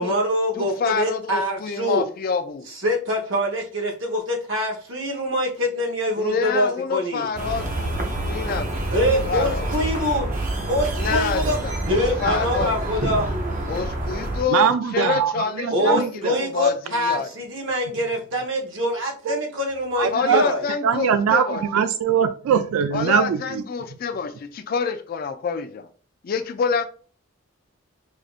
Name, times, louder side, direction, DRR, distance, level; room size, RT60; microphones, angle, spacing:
voice 1, 0.0-2.0 2.7-7.3 8.2-8.3 8.9-10.2 10.7-11.6 11.9-13.3 15.7-20.6, equal, 60° right, 1.0 m, -24 dB
voice 2, 0.6-2.7 6.2-8.8 9.1-9.7 11.0-12.7 13.7-16.7 17.0-17.3 20.1-21.6 22.9-25.9 26.2-26.9, left 6 dB, 45° left, 0.3 m, -27 dB
sound 1, 7.4-14.4, right 1 dB, 40° right, 0.7 m, -27 dB
voice 3, 14.5-16.4 19.3-19.4 20.0-20.4 20.8-23.6, right 7 dB, 80° right, 0.3 m, -22 dB
4.9 x 2.5 x 2.4 m
head